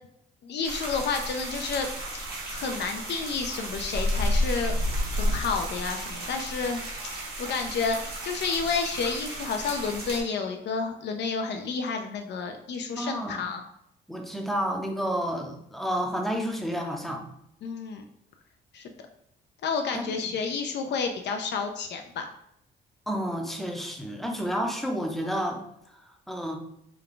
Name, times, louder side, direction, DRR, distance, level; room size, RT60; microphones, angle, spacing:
voice 1, 0.4-1.9 2.5-4.7 5.1-6.8 7.4-13.7 17.6-18.0 18.7-18.9 19.6-22.3, left 5 dB, 60° left, 4 dB, 0.4 m, -30 dB
sound 1, 0.6-10.2, equal, 50° right, 1.2 m, -32 dB
voice 2, 13.0-13.5 14.1-17.2 19.9-20.2 23.1-25.6 26.3-26.6, equal, ahead, 2 dB, 0.6 m, -30 dB
3.4 x 2.2 x 3.7 m, 0.77 s
cardioid pair, 90°, 20 cm